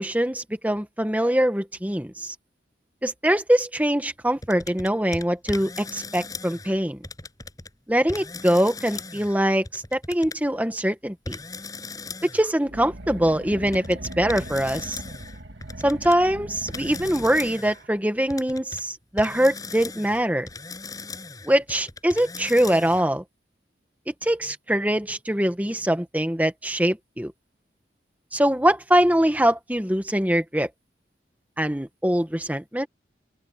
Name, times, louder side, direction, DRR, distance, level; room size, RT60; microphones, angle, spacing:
voice 1, 0.0-2.3 3.0-7.0 7.9-11.4 12.2-15.0 15.8-20.5 21.4-23.2 24.1-27.3 28.3-30.7 31.6-32.9, equal, 10° right, 1.3 m, -23 dB
sound 1, 4.4-6.8 7.0-7.7 8.1-10.4 11.3-12.5 13.7-16.2 16.7-17.8 18.3-18.8 19.2-23.1, left 3 dB, 20° left, 7.4 m, -38 dB
sound 2, 12.7-17.9, right 1 dB, 80° right, 2.1 m, -39 dB
open air
head